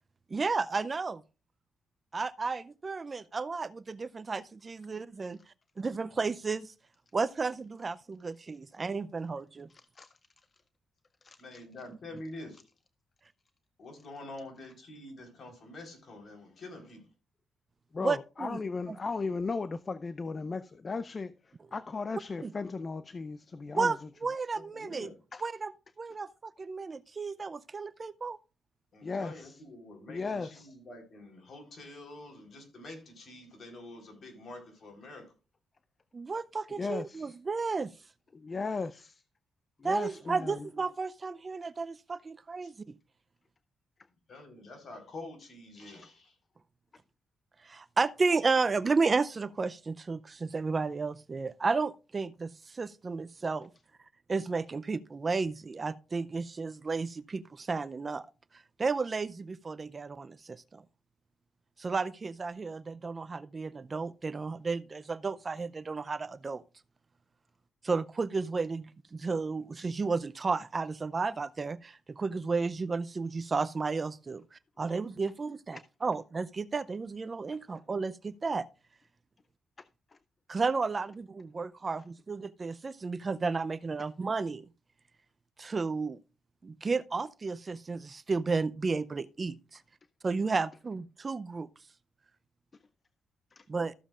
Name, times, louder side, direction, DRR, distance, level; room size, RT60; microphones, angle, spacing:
voice 1, 0.3-1.2 2.1-5.4 5.8-6.7 7.1-9.7 18.0-18.6 18.9-19.0 22.4-22.5 23.7-25.1 25.4-28.4 36.1-37.9 39.8-43.0 47.6-53.7 54.3-58.3 58.5-60.8 61.8-66.6 67.8-78.7 80.5-84.7 85.6-86.2 86.6-89.8 90.2-91.7 93.7-93.9, right 4 dB, 35° right, 0.5 m, -33 dB
voice 2, 9.7-10.1 11.2-11.6 17.9-24.0 25.3-25.4 29.0-29.6 30.1-30.8 36.8-37.4 38.3-39.2 39.8-40.6 75.7-75.8 77.5-77.6 79.8-79.9 93.5-93.6, left 4 dB, 40° left, 0.5 m, -36 dB
voice 3, 11.4-12.6 13.8-17.1 24.5-25.1 28.9-35.3 39.9-40.1 42.6-42.7 44.3-46.4, left 2 dB, 55° left, 3.9 m, -47 dB
14.0 x 7.2 x 2.4 m
cardioid pair, 75°, 0 cm